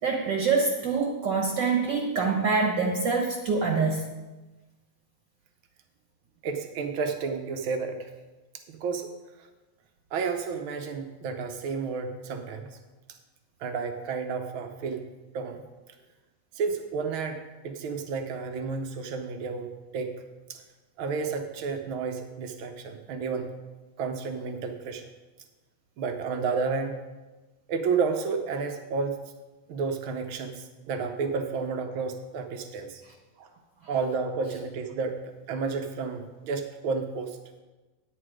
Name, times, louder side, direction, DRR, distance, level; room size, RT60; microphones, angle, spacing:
voice 1, 0.0-4.0, right 4 dB, 55° right, 2 dB, 1.2 m, -25 dB
voice 2, 6.4-8.1 8.7-9.1 10.1-12.8 13.6-15.1 15.3-15.6 16.5-20.2 20.5-20.6 21.0-23.5 24.0-25.1 26.0-27.0 27.7-29.1 29.7-33.0 33.4-33.5 33.9-37.4, right 5 dB, 75° right, 6 dB, 1.2 m, -31 dB
10.0 x 9.0 x 4.9 m, 1.2 s
omnidirectional pair, 3.3 m